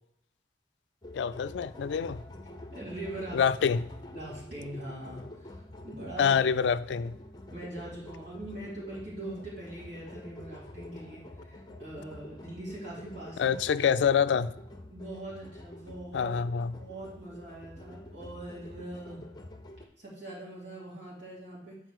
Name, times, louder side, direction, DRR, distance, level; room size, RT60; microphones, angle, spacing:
sound 1, 1.0-19.9, left 1 dB, 25° left, 0.7 m, -47 dB
voice 1, 1.1-2.2 3.3-3.9 6.2-7.2 13.4-14.5 16.1-16.7, left 7 dB, 85° left, 0.3 m, -26 dB
voice 2, 2.7-3.4 4.1-6.4 7.5-13.5 14.9-16.4 16.8-19.2 20.0-21.8, right 1 dB, 90° right, 3.0 m, -42 dB
7.9 x 4.6 x 4.6 m
head